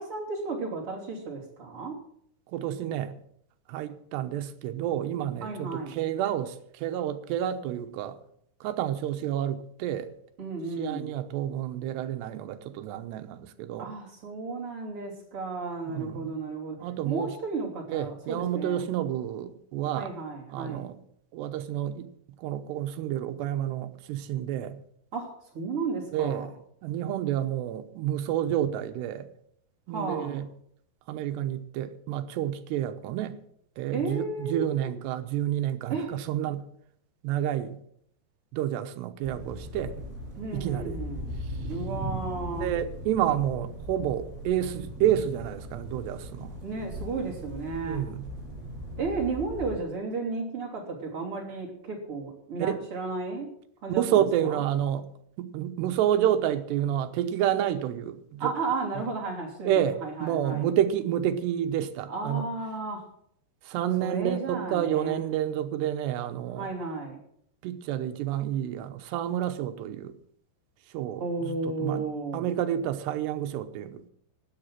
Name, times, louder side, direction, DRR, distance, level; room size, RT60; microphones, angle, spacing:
voice 1, 0.0-2.0 5.4-6.0 10.4-11.2 13.8-16.8 17.1-18.9 20.0-20.9 25.1-26.5 29.9-30.4 33.9-34.7 35.9-36.1 40.4-41.3 41.6-42.7 46.6-48.0 49.0-53.5 53.8-54.6 58.4-59.7 60.0-60.7 62.1-63.0 64.0-65.2 66.5-67.2 71.2-72.4, right 4 dB, 35° right, -1 dB, 3.5 m, -33 dB
voice 2, 2.5-3.2 3.7-8.2 8.6-10.1 10.8-13.9 15.9-16.3 16.8-17.3 17.9-20.1 20.5-21.0 21.3-22.1 22.4-24.8 26.1-26.5 26.8-29.3 29.9-30.5 31.1-33.4 33.8-36.6 37.2-37.8 38.5-40.0 40.5-41.0 42.6-46.5 47.9-48.3 52.6-52.8 53.9-55.1 55.4-58.5 59.0-59.1 59.7-62.5 63.6-66.7 67.6-70.1 70.9-72.1 72.3-74.0, right 11 dB, 80° right, 8 dB, 3.0 m, -29 dB
sound 1, 39.2-49.7, equal, 10° right, 5.1 m, -38 dB
13.0 x 9.9 x 7.4 m, 0.69 s
omnidirectional pair, 4.9 m